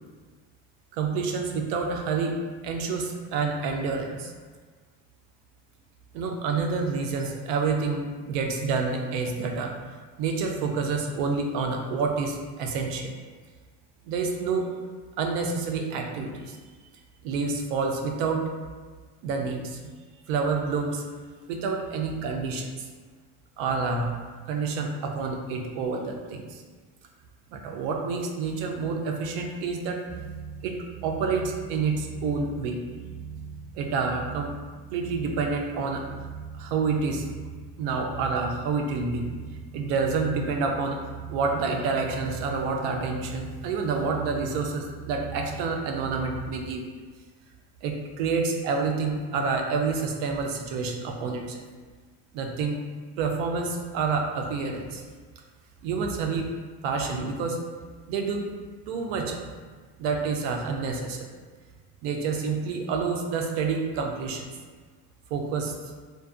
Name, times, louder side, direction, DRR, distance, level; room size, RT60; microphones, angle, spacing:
voice 1, 0.9-4.3 6.1-9.7 10.2-13.1 14.1-14.7 15.2-16.6 17.2-18.5 19.2-19.8 20.3-21.0 21.5-22.9 23.6-24.2 24.5-26.6 27.5-30.0 30.6-32.8 33.8-34.5 34.9-36.1 36.6-37.3 37.8-39.3 39.7-41.0 41.3-46.9 47.8-51.6 52.3-52.8 53.2-55.0 55.8-56.5 56.8-57.6 58.1-58.5 58.9-59.4 60.0-61.3 62.0-64.5 65.3-65.8, right 4 dB, 85° right, 2 dB, 0.5 m, -28 dB
sound 1, 30.1-46.7, right 6 dB, ahead, 0.4 m, -41 dB
2.5 x 2.2 x 2.4 m, 1.5 s
cardioid pair, 125°, 36 cm